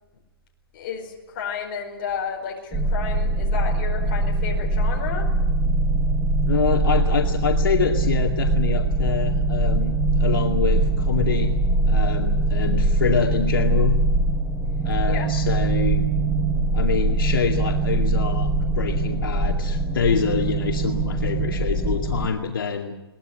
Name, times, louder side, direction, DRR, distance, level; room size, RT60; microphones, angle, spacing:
voice 1, 0.7-5.3 15.1-15.3, left 6 dB, 25° left, 0 dB, 4.7 m, -32 dB
sound 1, 2.7-22.3, right 2 dB, 5° right, 0.8 m, -22 dB
voice 2, 6.5-11.6 11.9-14.0 14.8-16.1 16.7-22.9, left 6 dB, 60° left, 1 dB, 2.2 m, -25 dB
22.0 x 19.0 x 9.3 m, 1.1 s
hypercardioid pair, 175°, 13 cm